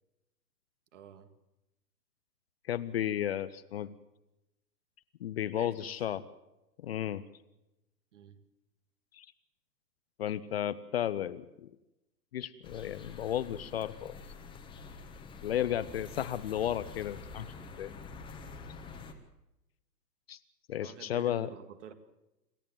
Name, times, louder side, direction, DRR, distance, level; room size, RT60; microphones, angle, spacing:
voice 1, 0.9-1.3 5.5-6.2 8.1-8.4 15.5-16.3 20.8-21.9, right 8 dB, 45° right, 10 dB, 2.2 m, -51 dB
voice 2, 2.7-3.9 5.2-6.2 6.8-7.2 9.1-9.3 10.2-11.7 12.3-14.1 15.4-17.5 17.8-17.9 20.3-20.4 20.7-21.5, left 11 dB, 40° left, 14 dB, 0.8 m, -33 dB
sound 1, 12.6-19.1, left 4 dB, 10° left, 1.5 m, -47 dB
27.0 x 14.0 x 7.5 m, 0.93 s
figure-of-eight pair, 120°, 49 cm